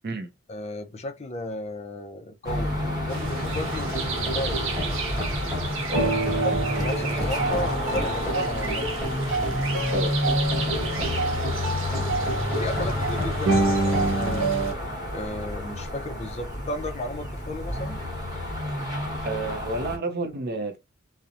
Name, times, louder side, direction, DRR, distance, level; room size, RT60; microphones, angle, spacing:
voice 1, 0.5-2.7 3.0-4.6 6.4-8.9 12.6-14.5 15.1-18.0, left 1 dB, 35° left, 0.5 m, -34 dB
sound 1, 2.4-20.0, left 1 dB, 20° right, 0.9 m, -29 dB
sound 2, 3.1-14.7, right 3 dB, 80° right, 0.8 m, -28 dB
sound 3, 3.6-14.5, equal, ahead, 1.4 m, -34 dB
voice 2, 5.9-6.2 9.9-10.2 11.0-11.1 19.3-20.8, right 2 dB, 55° right, 0.5 m, -30 dB
2.7 x 2.0 x 2.4 m
head